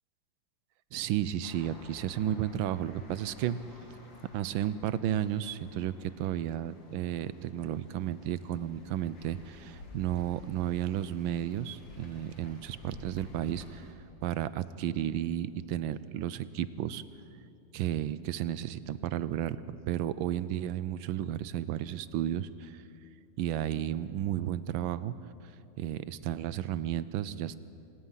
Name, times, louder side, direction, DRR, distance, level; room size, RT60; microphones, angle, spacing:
voice 1, 0.9-3.6 3.9-4.0 4.3-13.9 14.2-17.0 17.7-22.8 23.4-25.1 25.8-27.6, right 11 dB, 85° right, 16 dB, 1.4 m, -33 dB
sound 1, 1.4-13.9, left 2 dB, 70° left, 3.3 m, -53 dB
26.5 x 19.0 x 5.7 m, 2.7 s
omnidirectional pair, 2.1 m